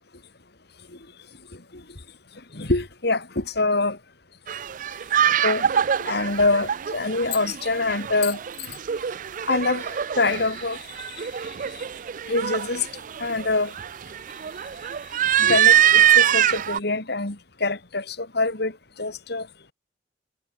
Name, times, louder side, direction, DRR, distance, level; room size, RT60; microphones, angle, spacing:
voice 1, 1.5-1.8 2.5-4.0 5.4-5.7 6.0-8.4 8.7-8.8 9.4-11.8 12.3-12.9 13.2-13.7 15.4-19.5, left 3 dB, 65° left, 2.9 m, -25 dB
sound 1, 4.5-16.8, right 10 dB, 45° right, 0.4 m, -23 dB
head